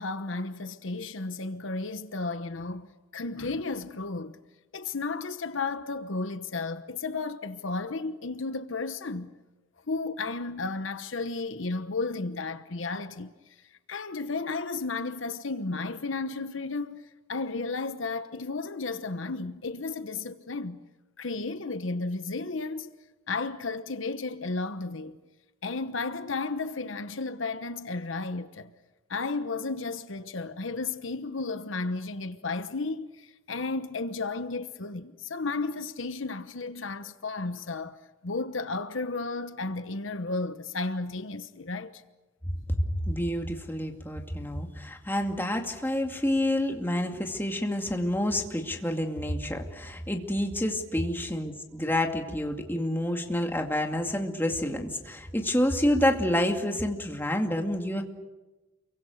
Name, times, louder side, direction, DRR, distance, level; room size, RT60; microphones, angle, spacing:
voice 1, 0.0-4.4 4.7-9.3 9.9-13.3 13.9-17.0 17.3-20.8 21.2-22.9 23.3-25.2 25.6-28.7 29.1-42.0, left 3 dB, 70° left, 1.1 m, -33 dB
voice 2, 42.7-58.0, left 1 dB, 10° left, 2.3 m, -28 dB
28.5 x 24.0 x 6.6 m
head